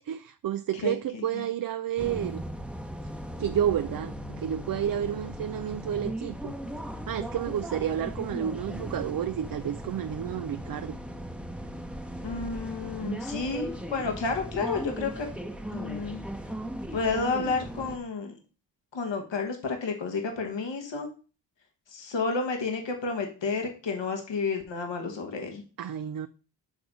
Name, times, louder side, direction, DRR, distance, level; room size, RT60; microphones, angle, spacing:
voice 1, 0.0-2.4 3.4-6.5 7.1-11.0 25.8-26.3, right 10 dB, 50° right, 0.5 m, -30 dB
voice 2, 0.8-1.4 12.2-15.3 15.7-16.2 16.9-18.3 18.9-21.1 21.9-25.6, left 4 dB, 75° left, 1.4 m, -31 dB
sound 1, 2.0-18.0, equal, ahead, 0.9 m, -37 dB
7.9 x 3.5 x 5.2 m
cardioid pair, 50°, 44 cm